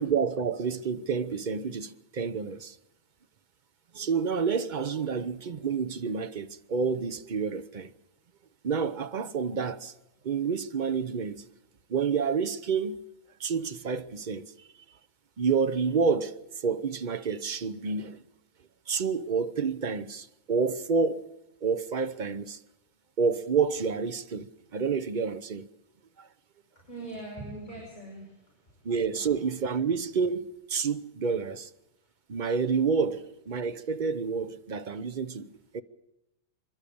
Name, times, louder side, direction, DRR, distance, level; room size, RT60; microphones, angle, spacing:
voice 1, 0.0-2.8 3.9-7.9 8.6-9.9 10.2-11.4 11.9-13.0 13.4-14.5 15.4-16.4 16.6-18.2 18.9-21.3 21.6-22.6 23.2-25.7 26.2-26.3 28.8-31.7 32.3-35.8, right 5 dB, 40° right, 0.8 m, -29 dB
voice 2, 26.7-29.4 32.0-32.1, right 2 dB, 35° left, 6.6 m, -43 dB
26.5 x 12.0 x 8.5 m
omnidirectional pair, 1.4 m